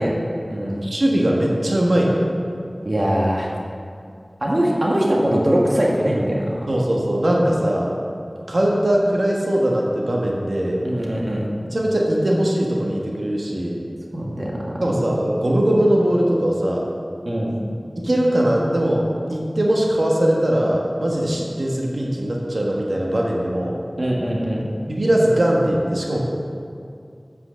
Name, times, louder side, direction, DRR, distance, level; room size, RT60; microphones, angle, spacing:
voice 1, 0.0-0.8 2.8-3.5 4.4-6.7 10.8-11.4 14.1-14.7 17.2-17.6 24.0-24.7, equal, 55° right, -3 dB, 1.5 m, -22 dB
voice 2, 0.8-2.3 6.7-7.9 8.5-10.8 11.7-13.8 14.8-16.8 17.9-23.8 24.9-26.2, right 1 dB, 80° right, -2 dB, 1.3 m, -20 dB
7.9 x 5.7 x 7.3 m, 2.4 s
wide cardioid pair, 40°, 0 cm